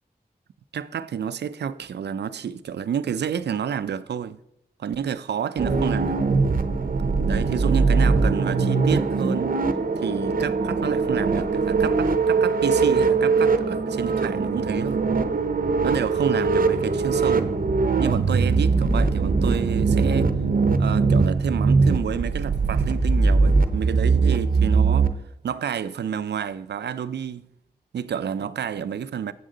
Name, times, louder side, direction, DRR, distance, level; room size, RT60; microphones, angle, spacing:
voice 1, 0.7-4.4 4.8-6.2 7.2-9.6 10.0-15.1 15.8-17.6 18.0-20.3 20.8-25.1 25.4-27.5 27.9-29.3, right 8 dB, 90° right, 0.4 m, -29 dB
sound 1, 5.6-25.1, right 4 dB, 55° right, 0.7 m, -21 dB
7.9 x 7.3 x 3.7 m
cardioid pair, 45°, 17 cm